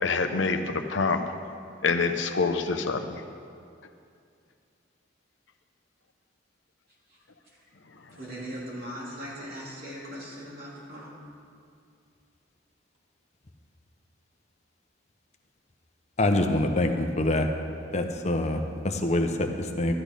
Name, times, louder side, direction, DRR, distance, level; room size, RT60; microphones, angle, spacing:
voice 1, 0.0-1.2 1.8-3.2, left 4 dB, 65° left, 6 dB, 0.7 m, -26 dB
voice 2, 8.2-11.1, equal, 50° right, -6 dB, 3.0 m, -39 dB
voice 3, 16.2-17.5 17.9-19.9, left 1 dB, 35° left, 5 dB, 0.8 m, -25 dB
13.0 x 8.3 x 5.3 m, 2.4 s
head